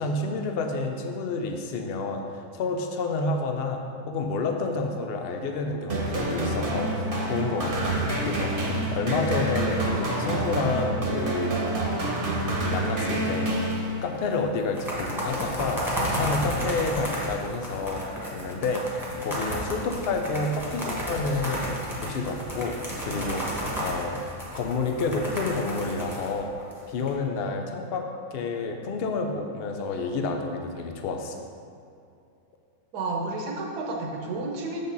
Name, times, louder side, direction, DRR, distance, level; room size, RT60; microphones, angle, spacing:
voice 1, 0.0-11.5 12.7-13.6 14.0-21.7 22.0-24.2 24.5-26.5 26.9-31.4, left 3 dB, 65° left, 4 dB, 0.6 m, -29 dB
sound 1, 5.9-14.3, right 1 dB, 40° right, 1.1 m, -27 dB
sound 2, 13.5-14.2 14.6-27.1, equal, ahead, 1.3 m, -32 dB
voice 2, 32.9-34.8, right 3 dB, 75° right, 1 dB, 1.5 m, -31 dB
7.0 x 5.3 x 4.0 m, 2.5 s
omnidirectional pair, 1.7 m